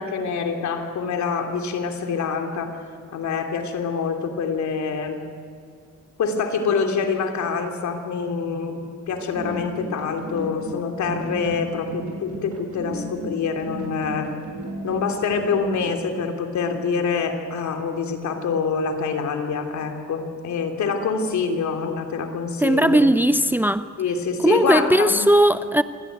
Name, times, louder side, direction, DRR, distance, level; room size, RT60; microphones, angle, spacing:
voice 1, 0.0-2.8 3.1-5.2 6.2-14.3 14.8-23.0 24.0-25.2, left 5 dB, 70° left, 3.1 m, -26 dB
sound 1, 9.1-15.9, right 1 dB, 75° right, 6.9 m, -34 dB
voice 2, 22.6-23.9 24.4-25.8, right 1 dB, 5° right, 0.6 m, -18 dB
26.5 x 17.0 x 9.3 m
cardioid pair, 90°, 30 cm